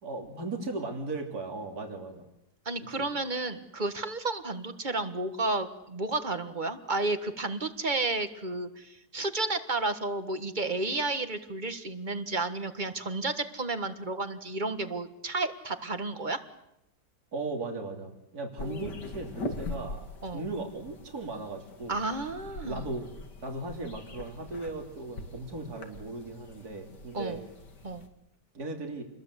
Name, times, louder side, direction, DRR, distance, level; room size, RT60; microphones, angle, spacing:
voice 1, 0.0-2.3 3.0-3.1 17.3-20.0 20.3-22.0 22.6-23.1 23.4-27.4 28.5-29.0, right 2 dB, 65° right, 2 dB, 3.5 m, -37 dB
voice 2, 2.6-16.4 18.6-18.9 20.2-20.4 21.9-22.9 27.1-27.4 27.8-28.1, right 2 dB, 30° right, 9 dB, 1.7 m, -32 dB
sound 1, 18.6-28.1, left 2 dB, 85° left, 3.0 m, -42 dB
28.5 x 21.5 x 8.1 m, 0.87 s
omnidirectional pair, 1.8 m